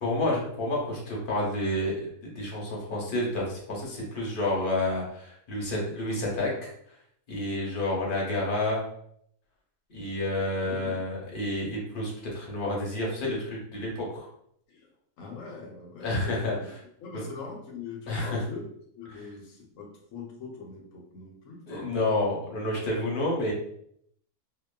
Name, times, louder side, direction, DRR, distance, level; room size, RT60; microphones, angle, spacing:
voice 1, 0.0-6.5 6.9-7.0 7.3-8.9 9.9-14.3 16.0-16.7 17.1-17.2 18.1-18.4 21.7-23.5, left 1 dB, 50° left, -3 dB, 0.7 m, -29 dB
voice 2, 10.6-11.0 14.7-14.9 15.2-16.7 17.0-18.6 18.9-22.0, left 4 dB, 70° left, 0 dB, 0.9 m, -42 dB
2.8 x 2.1 x 2.2 m, 0.69 s
omnidirectional pair, 1.5 m